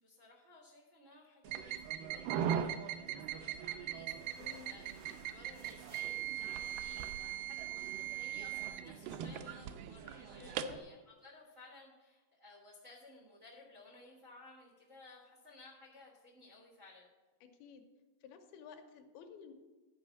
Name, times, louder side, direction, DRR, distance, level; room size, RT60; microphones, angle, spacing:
voice 1, 0.0-5.0 5.3-17.1, left 2 dB, 45° right, -2 dB, 1.1 m, -58 dB
sound 1, 1.5-10.8, right 10 dB, 85° right, 2.5 m, -40 dB
sound 2, 3.5-8.5, right 4 dB, 70° right, 2.7 m, -61 dB
voice 2, 4.4-4.8 10.3-10.8 17.4-17.9 18.2-19.5, left 7 dB, 90° left, 5 dB, 2.8 m, -53 dB
12.0 x 5.0 x 7.1 m, 1.2 s
omnidirectional pair, 4.3 m